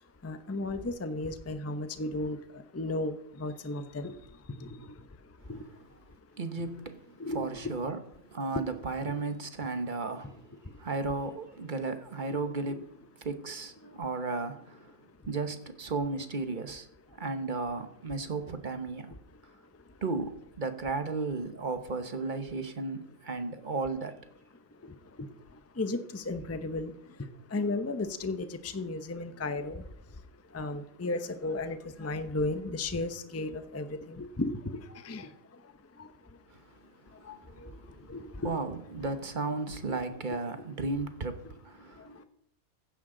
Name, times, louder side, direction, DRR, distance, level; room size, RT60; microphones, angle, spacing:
voice 1, 0.2-2.4 2.7-4.1 4.6-4.7 5.5-5.6 7.2-7.7 12.7-12.8 25.8-26.9 27.5-29.8 30.5-35.3 37.3-37.4 37.6-37.7 38.1-38.6 39.0-39.1 39.9-40.0, left 2 dB, 15° left, 0.6 m, -34 dB
voice 2, 6.4-7.0 7.3-8.0 8.3-10.3 10.8-12.9 13.2-14.9 15.3-16.9 17.2-19.1 20.0-24.1 37.2-38.0 38.4-42.2, right 3 dB, 40° right, 1.1 m, -34 dB
15.5 x 10.0 x 3.9 m
omnidirectional pair, 1.4 m